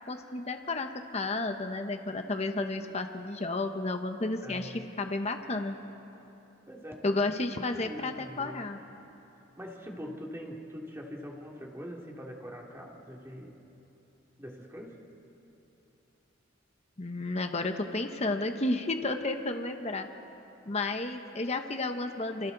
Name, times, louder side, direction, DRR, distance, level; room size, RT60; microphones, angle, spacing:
voice 1, 0.1-5.8 7.0-8.8 17.0-20.1 20.7-22.5, left 2 dB, 35° left, 6 dB, 1.0 m, -32 dB
voice 2, 4.4-4.9 6.7-7.1 7.5-8.7 9.3-13.5 14.4-15.0, equal, 15° right, -1 dB, 2.5 m, -43 dB
29.5 x 29.0 x 4.0 m, 3.0 s
head